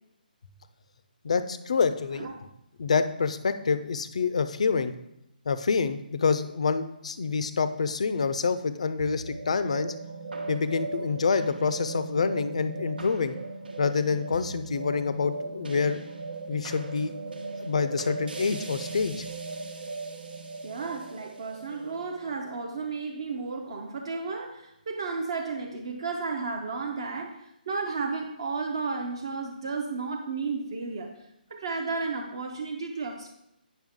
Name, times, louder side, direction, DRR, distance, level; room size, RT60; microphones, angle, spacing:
voice 1, 1.2-2.3 2.8-4.9 5.5-9.9 10.5-13.3 13.8-16.0 16.5-17.1 17.6-19.3, left 5 dB, 40° left, 12 dB, 0.4 m, -27 dB
sound 1, 9.0-23.4, right 3 dB, 85° right, 1.2 m, -38 dB
voice 2, 20.6-31.1 31.5-33.3, right 4 dB, 30° right, 2 dB, 0.6 m, -33 dB
9.0 x 5.7 x 3.6 m, 0.82 s
hypercardioid pair, 175°, 5 cm